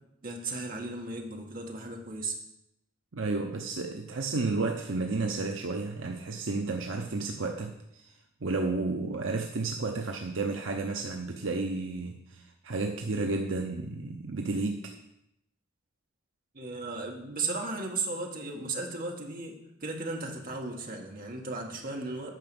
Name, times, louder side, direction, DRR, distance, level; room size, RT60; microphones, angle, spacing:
voice 1, 0.2-2.4 16.5-22.3, right 3 dB, 45° right, 1 dB, 1.7 m, -35 dB
voice 2, 3.1-8.1 8.4-14.9, right 3 dB, 65° right, 3 dB, 0.8 m, -32 dB
9.2 x 6.0 x 7.0 m, 0.81 s
head